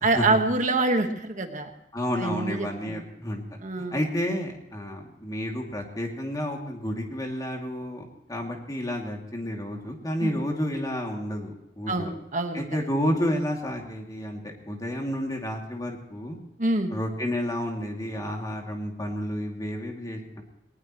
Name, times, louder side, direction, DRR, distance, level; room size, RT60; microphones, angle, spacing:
voice 1, 0.0-1.7 2.2-3.0 3.6-4.0 10.2-10.3 11.9-12.6 16.6-16.9, right 2 dB, 45° right, 6 dB, 1.5 m, -26 dB
voice 2, 1.9-3.4 3.9-12.1 12.5-14.4 14.7-16.4 16.9-20.4, equal, 20° left, 1 dB, 2.6 m, -30 dB
20.0 x 20.0 x 3.1 m, 0.85 s
head